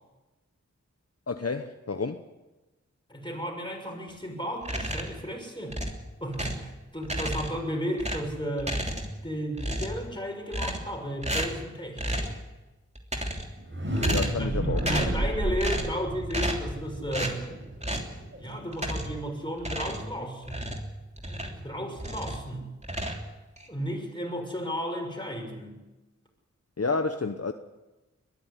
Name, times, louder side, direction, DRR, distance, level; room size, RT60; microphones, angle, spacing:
voice 1, 1.3-2.2 14.1-14.8 26.8-27.5, left 4 dB, 55° left, 8 dB, 1.0 m, -30 dB
voice 2, 3.1-5.8 6.2-8.8 9.2-12.4 14.2-17.5 18.4-20.7 21.2-22.7 23.7-25.8, equal, 15° left, 1 dB, 6.4 m, -34 dB
sound 1, 4.6-5.2 5.7-6.7 7.0-7.7 8.0-9.3 9.5-10.1 10.5-11.0 11.2-11.6 12.0-12.4 12.9-13.6 14.0-14.5 14.8-15.2 15.6-16.0 16.3-16.7 17.1-17.4 17.8-18.1 18.7-19.2 19.6-21.6 22.0-22.5 22.8-23.7, equal, 20° right, 3.1 m, -32 dB
sound 2, 13.6-19.4, right 1 dB, 40° right, 5.1 m, -32 dB
21.5 x 13.5 x 9.7 m, 1.1 s
wide cardioid pair, 40°, 30 cm